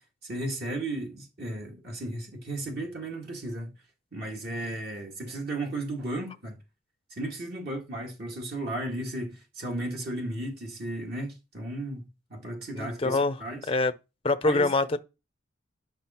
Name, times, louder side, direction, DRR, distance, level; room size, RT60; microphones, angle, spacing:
voice 1, 0.2-3.7 4.1-6.6 7.1-13.6 14.5-14.7, right 1 dB, 50° right, 2.1 m, -35 dB
voice 2, 12.8-13.4 13.7-13.9 14.2-15.0, left 3 dB, 25° left, 0.6 m, -24 dB
10.0 x 6.1 x 4.3 m
head